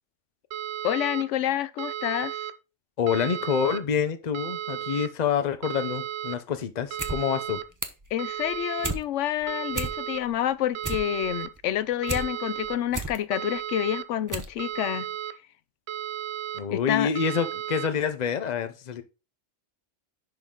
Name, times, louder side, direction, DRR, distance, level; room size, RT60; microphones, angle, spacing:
sound 1, 0.5-1.2 1.8-2.5 3.1-3.8 4.3-5.1 5.6-6.4 6.9-7.6 8.2-8.9 9.5-10.2 10.7-11.5 12.0-12.8 13.3-14.0 14.6-15.3 15.9-16.6 17.2-17.9, right 10 dB, 70° right, 0.9 m, -34 dB
voice 1, 0.8-2.4 8.1-15.1 16.7-17.1, left 11 dB, 85° left, 0.9 m, -28 dB
voice 2, 3.0-7.6 16.5-19.0, left 7 dB, 40° left, 0.8 m, -27 dB
sound 2, 6.8-7.2 7.5-8.1 8.5-9.0 9.4-9.5 9.7-10.3 10.6-12.2 12.6-13.2 13.7-13.8 14.3-14.6 14.8-14.9, right 3 dB, 20° right, 0.7 m, -32 dB
10.5 x 4.1 x 3.7 m
omnidirectional pair, 1.2 m